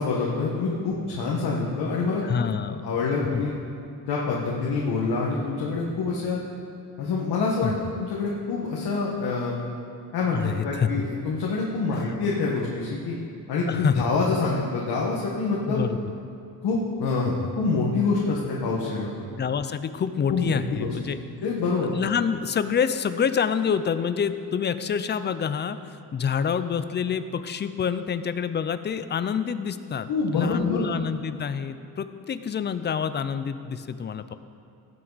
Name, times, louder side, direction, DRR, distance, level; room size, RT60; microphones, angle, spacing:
voice 1, 0.0-3.5 4.1-6.4 7.0-7.7 8.0-9.5 10.1-13.1 13.5-15.9 16.6-19.1 20.3-20.9 21.4-21.9 30.1-30.9, left 4 dB, 80° left, -4 dB, 1.6 m, -26 dB
voice 2, 2.2-2.8 3.3-3.4 7.6-7.7 10.3-11.0 13.6-14.1 15.7-16.0 17.2-17.3 19.3-21.2 21.8-25.8 26.1-34.3, left 7 dB, 30° left, 12 dB, 0.4 m, -27 dB
17.5 x 7.7 x 4.0 m, 2.6 s
cardioid pair, 145°, 38 cm